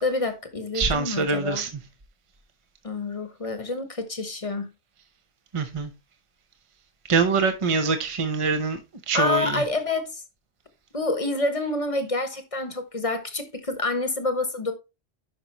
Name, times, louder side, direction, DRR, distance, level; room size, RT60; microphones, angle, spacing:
voice 1, 0.0-1.7 2.8-4.7 9.1-10.2 10.9-14.7, left 2 dB, 30° left, 1.2 m, -28 dB
voice 2, 0.7-1.7 5.5-5.9 7.1-9.6, right 4 dB, 30° right, 0.9 m, -24 dB
10.5 x 5.3 x 3.0 m
omnidirectional pair, 1.1 m